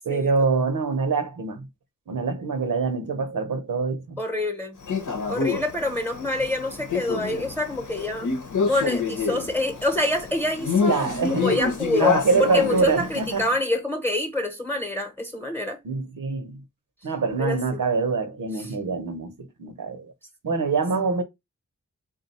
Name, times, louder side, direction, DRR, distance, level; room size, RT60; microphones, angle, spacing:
voice 1, 0.0-1.7 2.1-4.2 10.9-11.5 12.0-13.5 15.8-16.6 17.0-20.1 20.4-21.2, right 4 dB, 85° right, 0.7 m, -25 dB
voice 2, 4.2-4.8 5.3-8.3 8.6-15.8 17.4-17.8, left 1 dB, 5° left, 0.9 m, -26 dB
Male speech man speaking, 4.9-13.4, left 4 dB, 70° left, 0.9 m, -27 dB
3.7 x 2.2 x 4.1 m
wide cardioid pair, 90°, 32 cm